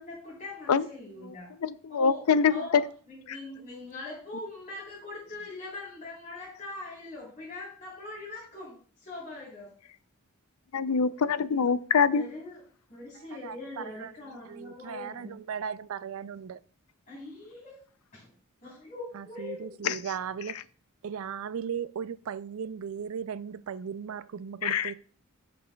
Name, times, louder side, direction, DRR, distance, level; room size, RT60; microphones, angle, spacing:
voice 1, 0.0-1.5 1.9-2.2 2.5-2.8 3.1-9.7 11.5-11.6 12.1-12.6 12.9-15.3 17.1-17.8 18.1-18.3 18.6-19.8, left 2 dB, 40° left, 3.5 m, -42 dB
voice 2, 1.6-2.8 3.3-3.4 10.7-12.2 19.8-20.0 24.6-24.9, left 6 dB, 85° left, 0.5 m, -24 dB
voice 3, 13.1-16.6 19.1-20.6 21.0-24.9, right 7 dB, 65° right, 0.4 m, -37 dB
16.5 x 6.0 x 2.3 m
head